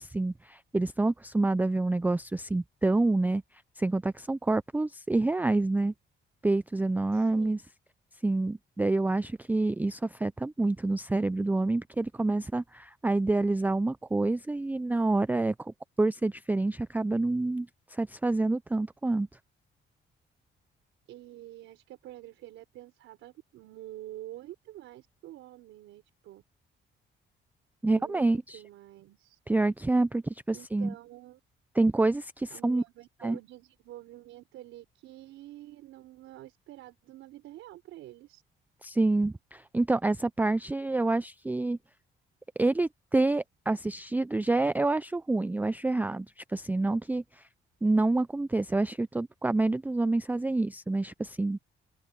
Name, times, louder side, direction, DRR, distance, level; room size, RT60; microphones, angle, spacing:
voice 1, 0.0-3.4 3.8-5.9 6.4-7.6 8.2-19.3 27.8-28.6 29.5-30.9 31.8-32.8 33.2-33.4 38.8-41.8 42.6-47.5 47.8-51.6, right 2 dB, 10° right, 0.4 m, -27 dB
voice 2, 7.1-7.6 21.1-26.4 27.9-29.4 30.5-31.4 32.5-38.4, right 14 dB, 90° right, 5.2 m, -48 dB
cardioid pair, 90°, 20 cm